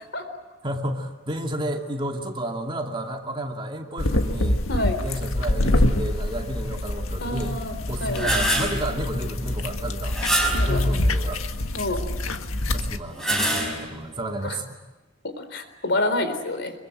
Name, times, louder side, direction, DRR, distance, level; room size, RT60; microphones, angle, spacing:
voice 1, 0.6-4.6 5.0-7.6 7.9-10.1 10.6-11.4 12.7-14.8, right 1 dB, 25° right, 2 dB, 2.5 m, -31 dB
sound 1, 4.0-13.0, left 1 dB, 80° left, 1.7 m, -26 dB
voice 2, 7.2-7.8 8.0-8.3 10.5-10.8 11.7-12.0 14.4-14.5 15.4-16.7, left 2 dB, 55° left, 8 dB, 4.0 m, -27 dB
sound 2, 7.9-8.8 10.1-10.8 13.0-14.0, right 1 dB, ahead, 5.2 m, -25 dB
25.5 x 23.5 x 9.0 m, 1.1 s
head